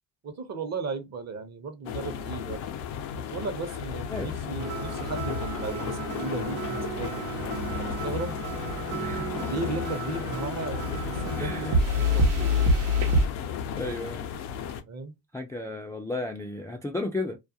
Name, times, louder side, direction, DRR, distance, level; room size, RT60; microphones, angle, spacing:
voice 1, 0.2-2.6 3.2-8.4 9.4-12.8 14.9-15.1, right 3 dB, 40° right, 0.8 m, -36 dB
sound 1, 1.9-14.8, left 7 dB, 90° left, 0.6 m, -34 dB
sound 2, 4.6-13.3, equal, 85° right, 0.9 m, -28 dB
voice 2, 8.9-9.5 11.4-11.8 13.8-14.2 15.3-17.4, left 2 dB, 10° left, 0.3 m, -34 dB
2.3 x 2.2 x 2.7 m
supercardioid pair, 75°, 41 cm